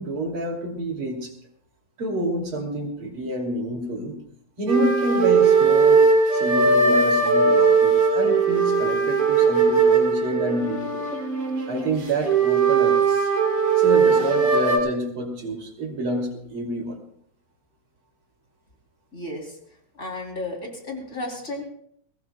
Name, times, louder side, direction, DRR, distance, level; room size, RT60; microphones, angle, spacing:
voice 1, 0.0-1.3 2.0-4.1 4.6-6.0 6.3-11.1 11.7-13.3 13.8-17.0, right 1 dB, 40° right, 1 dB, 3.1 m, -28 dB
sound 1, 4.7-14.8, right 5 dB, 55° right, 4.2 m, -19 dB
voice 2, 19.1-19.5 20.0-21.6, left 2 dB, 20° left, 0 dB, 3.2 m, -33 dB
21.0 x 19.0 x 2.2 m, 0.67 s
omnidirectional pair, 3.9 m